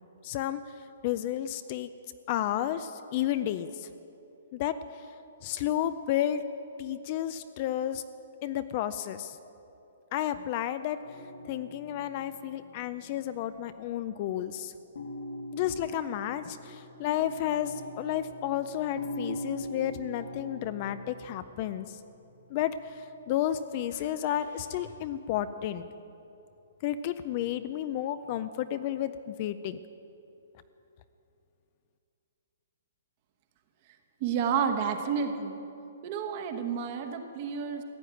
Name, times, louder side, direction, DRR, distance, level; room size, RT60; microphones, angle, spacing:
voice 1, 0.2-0.6 1.0-1.9 2.3-3.9 4.5-4.8 5.4-6.4 6.8-8.0 8.4-9.4 10.1-11.0 11.5-14.7 15.5-22.0 22.5-25.8 26.8-29.8, left 11 dB, 30° left, 12 dB, 0.4 m, -32 dB
sound 1, 11.0-13.9 14.2-14.4 14.9-23.5 23.9-24.9, equal, 90° left, 2.4 m, -43 dB
voice 2, 34.2-35.6 36.0-37.8, right 7 dB, 30° right, 7 dB, 1.1 m, -30 dB
15.5 x 9.4 x 8.9 m, 2.8 s
hypercardioid pair, 170°, 0 cm